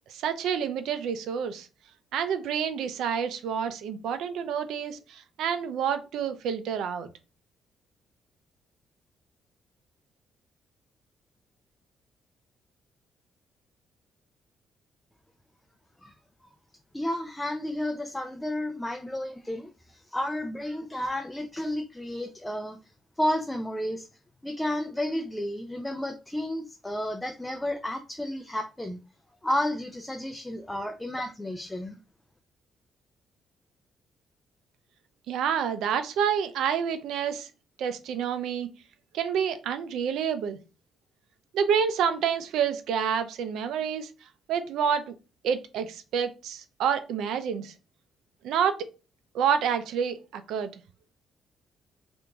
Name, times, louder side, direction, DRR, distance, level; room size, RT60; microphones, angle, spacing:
voice 1, 0.1-1.7 2.1-7.1 35.3-37.5 37.8-38.7 39.1-40.6 41.5-44.1 44.5-45.1 45.4-47.7 48.4-48.8 49.3-50.7, right 7 dB, 85° right, 10 dB, 0.4 m, -28 dB
voice 2, 16.9-22.8 23.2-24.1 24.4-29.0 29.4-32.0, left 1 dB, 10° left, 5 dB, 0.4 m, -32 dB
2.9 x 2.5 x 3.4 m, 0.31 s
cardioid pair, 90°, 0 cm